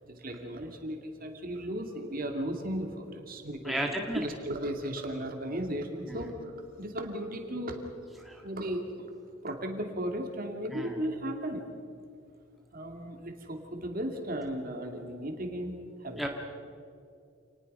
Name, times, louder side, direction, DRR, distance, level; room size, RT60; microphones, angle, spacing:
voice 1, 0.0-3.8 4.2-6.5 6.8-7.9 8.4-8.9 9.4-11.6 12.7-16.2, right 1 dB, 40° right, 3 dB, 2.5 m, -35 dB
voice 2, 3.6-4.2 6.1-6.3 8.2-8.4 10.7-11.0 16.2-16.3, right 1 dB, ahead, 0 dB, 1.8 m, -33 dB
28.5 x 20.0 x 5.6 m, 2.4 s
head